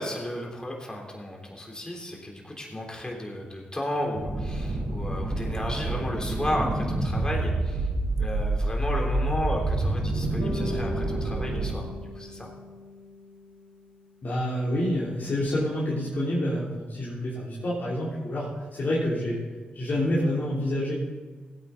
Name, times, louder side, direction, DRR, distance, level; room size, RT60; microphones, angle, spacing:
voice 1, 0.0-7.9 8.2-12.5, left 1 dB, 20° left, 0 dB, 3.6 m, -33 dB
sound 1, 4.1-11.8, right 2 dB, 45° right, 3.9 m, -28 dB
Bass guitar, 10.4-14.5, left 1 dB, 90° left, 2.2 m, -40 dB
voice 2, 14.2-19.4 19.7-20.9, left 1 dB, 60° left, -7 dB, 3.3 m, -28 dB
16.0 x 9.2 x 4.1 m, 1.4 s
supercardioid pair, 50°, 4 cm